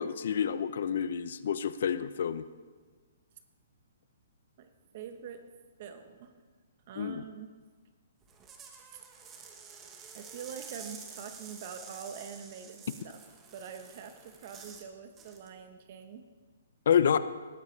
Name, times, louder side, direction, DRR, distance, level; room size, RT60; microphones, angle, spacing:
voice 1, 0.0-2.4 7.0-7.2 16.9-17.2, left 8 dB, 60° left, 13 dB, 0.7 m, -28 dB
voice 2, 4.6-5.4 5.8-6.3 6.9-7.6 8.9-9.1 10.1-13.2 13.5-16.2, right 7 dB, 45° right, 8 dB, 1.1 m, -45 dB
sound 1, 8.2-14.9 15.2-15.5, right 6 dB, 15° right, 1.2 m, -49 dB
18.0 x 12.0 x 3.3 m, 1.5 s
hypercardioid pair, 155°, 0 cm